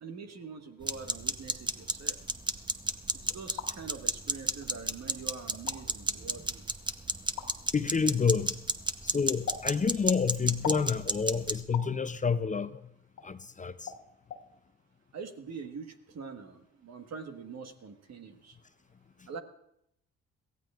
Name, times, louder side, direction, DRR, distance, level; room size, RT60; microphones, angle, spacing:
voice 1, 0.0-2.1 3.3-6.6 15.1-18.6 19.3-19.4, right 5 dB, 60° right, 6 dB, 1.5 m, -44 dB
sound 1, 0.8-11.6, right 2 dB, 15° right, 0.9 m, -34 dB
sound 2, 3.3-3.7 4.6-4.7 5.5-5.8 7.4-7.5 9.5-9.7 10.6-10.9 11.7-11.9 13.2-13.3 13.9-14.0 14.3-14.4, left 8 dB, 75° left, 1.6 m, -38 dB
voice 2, 7.7-8.6 9.0-12.9 13.2-13.9, left 5 dB, 25° left, 12 dB, 0.6 m, -29 dB
22.0 x 15.0 x 2.5 m, 0.78 s
supercardioid pair, 55°, 30 cm